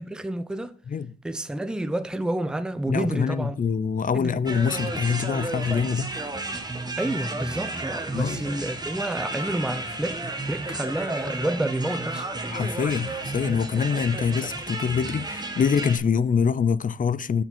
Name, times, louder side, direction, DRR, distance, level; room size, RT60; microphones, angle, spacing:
voice 1, 0.0-0.7 1.2-3.6 4.1-4.4 7.0-12.2, right 1 dB, 5° right, 0.6 m, -29 dB
voice 2, 2.9-6.1 8.1-8.4 12.5-17.4, left 6 dB, 40° left, 0.4 m, -25 dB
sound 1, 4.5-16.0, right 2 dB, 20° right, 1.3 m, -32 dB
6.9 x 5.8 x 4.2 m
cardioid pair, 90°, 21 cm